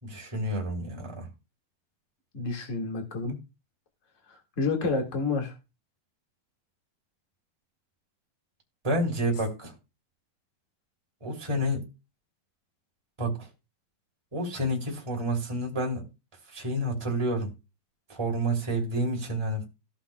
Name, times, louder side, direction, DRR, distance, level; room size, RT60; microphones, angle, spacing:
voice 1, 0.0-1.3 8.8-9.7 11.2-11.8 13.2-13.5 14.3-16.0 16.5-17.5 18.1-19.6, right 1 dB, 10° right, 2.2 m, -29 dB
voice 2, 2.3-3.4 4.3-5.5, left 3 dB, 70° left, 0.7 m, -29 dB
17.0 x 5.9 x 2.3 m
omnidirectional pair, 5.0 m